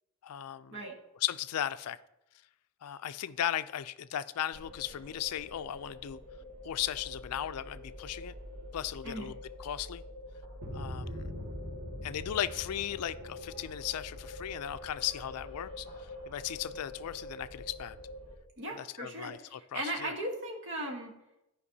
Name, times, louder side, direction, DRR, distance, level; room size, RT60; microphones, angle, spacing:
voice 1, 0.2-0.8 1.1-2.0 2.8-6.2 6.6-8.3 8.7-10.0 10.7-11.3 12.0-18.0 18.7-20.1, left 11 dB, 90° left, 14 dB, 0.4 m, -36 dB
sound 1, 4.5-18.4, left 1 dB, 85° right, 2.0 m, -44 dB
voice 2, 18.6-19.4 19.7-21.1, right 1 dB, 55° right, 1 dB, 1.3 m, -37 dB
14.0 x 5.2 x 2.7 m, 0.91 s
head